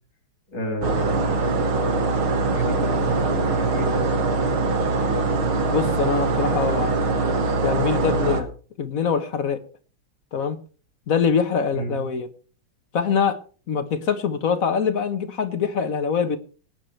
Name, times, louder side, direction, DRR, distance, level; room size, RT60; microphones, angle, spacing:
voice 1, 0.5-1.4 2.5-4.3 11.7-12.0, equal, 65° left, 3.8 m, -31 dB
sound 1, 0.8-8.4, right 3 dB, 75° right, 2.5 m, -22 dB
voice 2, 5.7-7.0 7.6-8.5 8.8-9.6 10.3-10.6 11.1-12.3 12.9-13.4 13.7-16.4, left 6 dB, 50° left, 1.3 m, -23 dB
24.0 x 9.5 x 3.3 m
omnidirectional pair, 2.3 m